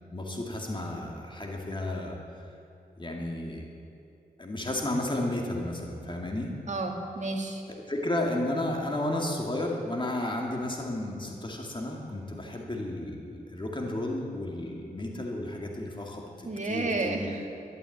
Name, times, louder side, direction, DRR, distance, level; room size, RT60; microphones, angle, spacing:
voice 1, 0.1-2.5 3.0-3.7 4.4-6.5 7.7-17.3, left 1 dB, 30° left, 0 dB, 2.3 m, -33 dB
voice 2, 6.7-7.6 16.5-17.5, right 2 dB, 45° right, 2 dB, 2.1 m, -31 dB
12.5 x 11.0 x 8.6 m, 2.6 s
cardioid pair, 65°, 17 cm